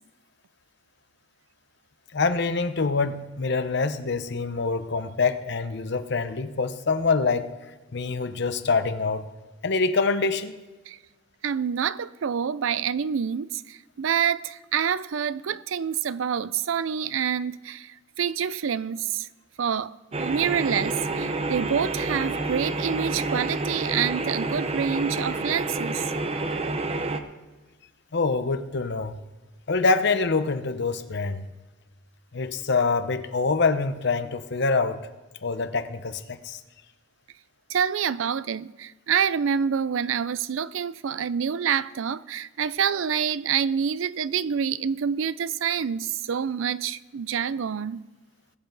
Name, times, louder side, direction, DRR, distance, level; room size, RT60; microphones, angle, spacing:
voice 1, 2.1-7.5 7.9-9.2 9.6-10.5 28.1-29.2 29.7-31.4 32.3-35.0 35.4-36.6, left 4 dB, 60° left, 0.8 m, -25 dB
voice 2, 11.4-19.3 19.6-26.1 37.7-48.0, right 7 dB, 80° right, 0.4 m, -27 dB
sound 1, 20.1-27.2, right 2 dB, 30° right, 0.8 m, -29 dB
19.5 x 8.1 x 3.9 m
head